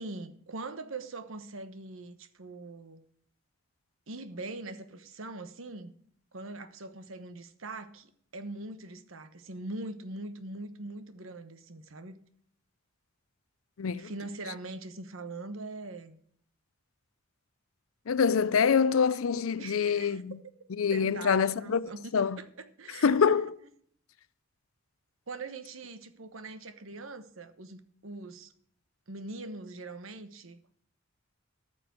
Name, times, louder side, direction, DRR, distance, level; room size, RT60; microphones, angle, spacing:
voice 1, 0.0-3.0 4.1-5.9 6.3-12.2 13.9-16.2 19.6-20.2 20.9-23.1 25.3-28.5 29.1-30.6, right 2 dB, 75° right, 1.1 m, -42 dB
voice 2, 13.8-14.1 18.1-20.4 20.7-22.4 23.0-23.6, left 6 dB, 85° left, 0.5 m, -26 dB
14.0 x 6.0 x 6.1 m
head